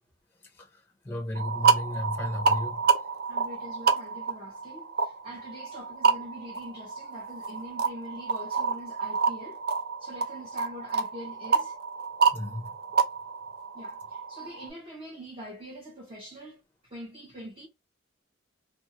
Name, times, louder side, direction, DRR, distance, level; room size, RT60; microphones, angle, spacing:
voice 1, 1.0-2.8 12.3-12.7, left 1 dB, 10° left, 0.6 m, -33 dB
sound 1, 1.3-14.7, right 5 dB, 50° right, 0.5 m, -28 dB
voice 2, 3.3-9.6 10.0-11.8 13.7-16.6 16.9-17.7, equal, 30° right, 0.9 m, -44 dB
2.5 x 2.4 x 2.8 m
head